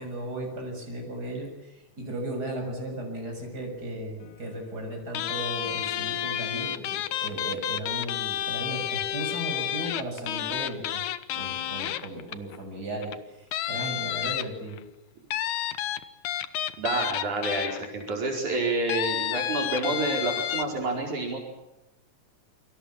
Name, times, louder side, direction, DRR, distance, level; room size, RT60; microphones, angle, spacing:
voice 1, 0.0-11.0 11.4-14.8, right 1 dB, 30° right, 2 dB, 7.3 m, -36 dB
sound 1, 5.1-12.6 13.0-13.2 13.5-14.8 15.3-18.1 18.9-20.6, left 11 dB, 75° left, 2.5 m, -30 dB
voice 2, 16.8-21.4, right 2 dB, 70° right, 1 dB, 6.3 m, -28 dB
28.5 x 24.5 x 7.4 m, 0.93 s
omnidirectional pair, 3.6 m